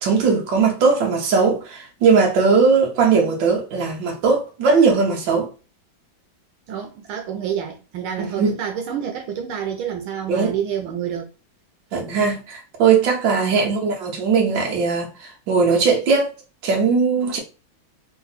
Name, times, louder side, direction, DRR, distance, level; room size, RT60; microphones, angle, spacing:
voice 1, 0.0-5.5 8.2-8.5 10.3-10.5 11.9-16.3 16.6-17.4, right 5 dB, 70° right, 1.7 m, -19 dB
voice 2, 6.7-11.3 13.3-13.7, right 8 dB, 85° right, 1.7 m, -28 dB
4.1 x 2.6 x 4.1 m
omnidirectional pair, 2.2 m